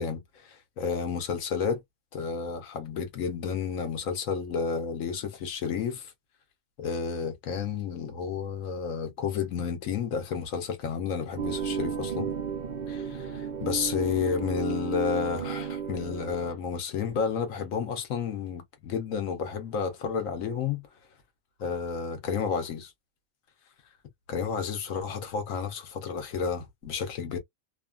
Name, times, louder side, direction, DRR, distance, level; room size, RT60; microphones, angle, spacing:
voice 1, 0.0-1.8 2.1-6.1 6.8-12.3 12.9-20.8 21.6-22.9 24.3-27.4, left 6 dB, 70° left, 1.1 m, -31 dB
sound 1, 11.4-16.5, right 7 dB, 75° right, 0.4 m, -33 dB
2.7 x 2.4 x 2.2 m
omnidirectional pair, 1.4 m